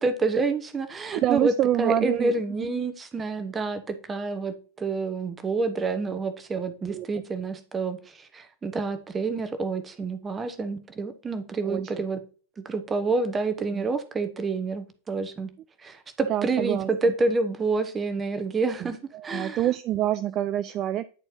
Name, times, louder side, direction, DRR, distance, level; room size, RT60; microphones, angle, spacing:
voice 1, 0.0-1.5 1.8-12.2 12.6-15.5 15.8-19.0 19.2-19.6, right 3 dB, 15° right, 9 dB, 0.9 m, -28 dB
voice 2, 1.1-2.3 2.6-2.8 6.8-7.1 11.6-11.8 13.7-13.9 16.3-16.9 18.8-18.9 19.1-21.1, right 12 dB, 35° right, 13 dB, 0.3 m, -26 dB
9.7 x 4.3 x 2.7 m, 0.39 s
figure-of-eight pair, 90°, 0 cm